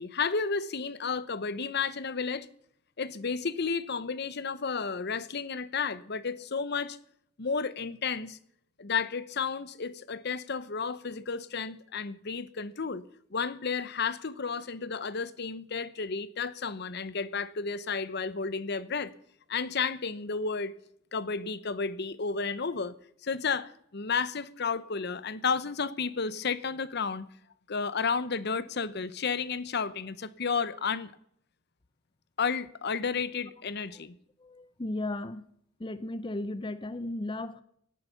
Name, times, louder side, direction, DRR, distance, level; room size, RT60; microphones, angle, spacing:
voice 1, 0.0-2.5 3.0-7.0 7.4-8.4 8.8-13.0 13.3-19.1 19.5-20.7 21.1-22.9 23.2-27.3 27.7-31.1 32.4-34.2, left 5 dB, 55° left, 0.8 m, -32 dB
voice 2, 34.4-35.5 35.8-37.6, left 2 dB, 25° left, 0.6 m, -35 dB
17.5 x 10.5 x 6.9 m
head